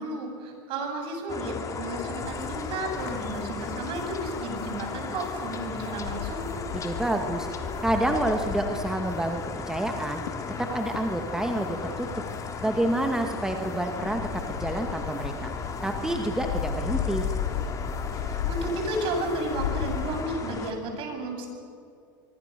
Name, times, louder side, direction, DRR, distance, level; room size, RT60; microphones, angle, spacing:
voice 1, 0.0-6.5 18.2-21.5, right 1 dB, 50° right, 4 dB, 7.9 m, -33 dB
sound 1, 1.3-20.7, left 4 dB, 30° left, 3.4 m, -36 dB
sound 2, 2.1-20.2, left 8 dB, 75° left, 2.3 m, -36 dB
voice 2, 6.7-7.5 7.8-10.2 10.6-12.1 12.6-15.5 15.8-17.2, right 1 dB, 5° right, 4 dB, 2.0 m, -28 dB
25.0 x 24.5 x 6.9 m, 2.4 s
hypercardioid pair, 95°, 11 cm